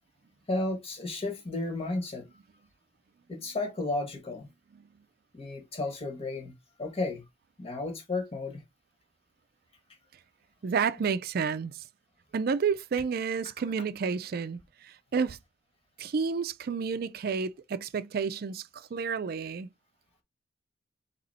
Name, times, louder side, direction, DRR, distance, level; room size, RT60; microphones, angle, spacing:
voice 1, 0.5-2.2 3.3-4.5 5.3-6.5 6.8-7.2 7.6-8.6, left 2 dB, 35° left, 1.4 m, -33 dB
voice 2, 10.6-11.9 12.3-15.4 16.0-19.7, right 5 dB, 55° right, 0.4 m, -30 dB
4.1 x 2.9 x 4.0 m
head